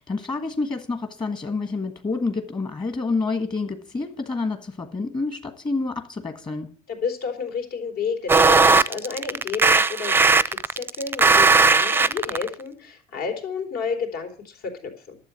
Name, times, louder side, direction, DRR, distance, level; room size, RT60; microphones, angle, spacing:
voice 1, 0.0-6.7, left 3 dB, 25° left, 1.5 m, -28 dB
voice 2, 6.9-15.2, left 5 dB, 70° left, 3.9 m, -31 dB
sound 1, 8.3-12.5, right 4 dB, 15° right, 0.5 m, -17 dB
11.5 x 7.5 x 7.5 m
cardioid pair, 115°, 17 cm